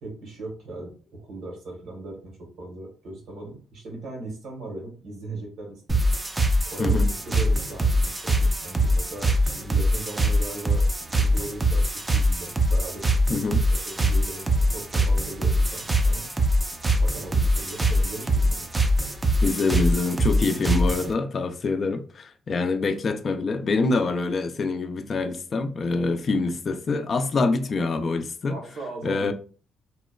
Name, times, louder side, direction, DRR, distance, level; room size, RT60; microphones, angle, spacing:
voice 1, 0.0-6.0 6.6-13.1 13.4-16.3 17.0-18.7 28.5-29.3, right 2 dB, 75° right, 1.2 m, -38 dB
sound 1, 5.9-21.1, equal, 20° right, 0.4 m, -23 dB
voice 2, 6.8-7.1 13.3-13.7 19.4-28.6 29.0-29.3, left 3 dB, 45° left, 0.3 m, -25 dB
2.9 x 2.1 x 2.3 m
cardioid pair, 90°, 0 cm